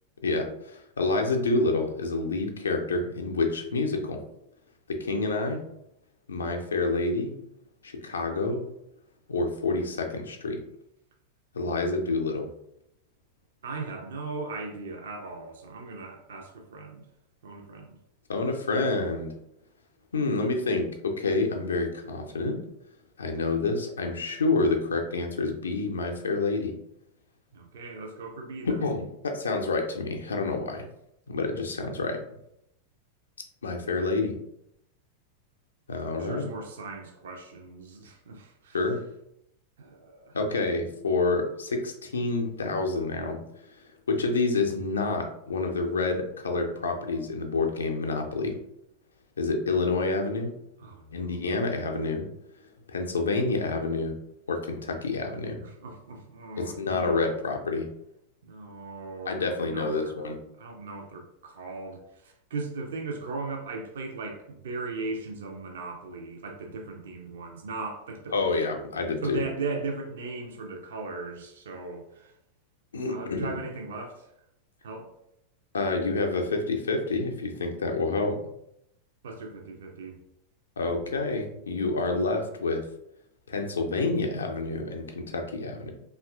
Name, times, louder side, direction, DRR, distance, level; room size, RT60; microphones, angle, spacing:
voice 1, 0.2-4.2 4.9-5.6 6.3-7.3 7.8-8.6 9.3-10.6 11.5-12.5 18.3-19.3 20.1-22.6 23.2-26.7 28.7-30.9 31.3-32.2 33.6-34.4 35.9-36.5 38.7-39.0 40.3-43.4 44.1-48.6 49.4-50.5 51.1-52.3 52.9-54.1 54.5-55.6 56.6-57.9 59.3-60.4 68.3-69.4 72.9-73.6 75.7-78.4 80.8-82.8 83.5-85.9, left 3 dB, 70° left, 3 dB, 0.4 m, -28 dB
voice 2, 13.6-17.1 17.4-18.0 27.5-28.9 36.2-38.9 39.8-40.4 50.8-51.5 55.6-57.3 58.4-60.1 60.6-68.3 69.2-72.3 73.1-74.3 74.8-75.1 79.2-80.2, right 3 dB, 60° right, 2 dB, 0.4 m, -38 dB
2.8 x 2.3 x 2.2 m, 0.78 s
figure-of-eight pair, 90°, 0 cm